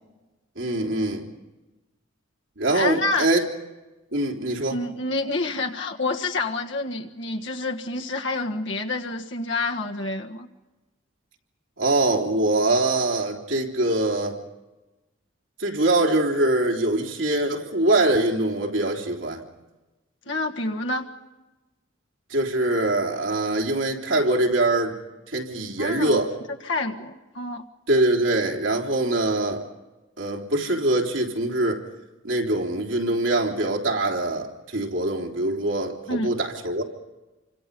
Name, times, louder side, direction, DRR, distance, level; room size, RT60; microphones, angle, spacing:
voice 1, 0.6-1.2 2.6-3.5 4.1-4.8 11.8-14.4 15.6-19.4 22.3-25.0 25.3-26.3 27.9-29.6 30.2-31.8 32.2-36.8, right 2 dB, 75° right, 1 dB, 3.4 m, -23 dB
voice 2, 2.7-3.3 4.7-10.5 20.2-21.1 25.8-26.2 26.6-27.7 36.1-36.3, left 2 dB, 70° left, 2 dB, 1.6 m, -28 dB
29.0 x 25.5 x 5.3 m, 1.1 s
head